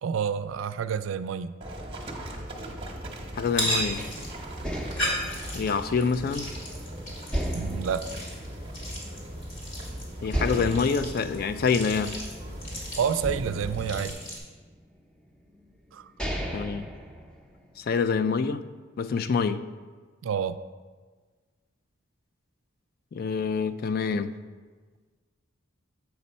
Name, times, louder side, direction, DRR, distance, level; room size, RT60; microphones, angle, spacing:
voice 1, 0.0-1.5 7.5-8.1 13.0-14.2 15.9-16.1 20.2-20.6, right 7 dB, 80° right, 13 dB, 0.3 m, -29 dB
Livestock farm animals working animals, 1.6-14.1, right 1 dB, 30° right, 0.9 m, -39 dB
voice 2, 3.3-4.0 5.5-6.5 10.2-12.2 16.5-16.9 17.8-18.6 19.0-19.6 23.1-24.3, left 5 dB, 50° left, 11 dB, 0.3 m, -26 dB
sound 1, 3.4-14.4, equal, 70° left, 2.1 m, -36 dB
sound 2, 4.0-6.8 7.3-9.3 9.6-9.7 10.3-12.7 13.2-14.8 15.6-15.7 16.0-17.8, equal, 5° left, 0.7 m, -35 dB
7.7 x 5.4 x 4.2 m, 1.4 s
head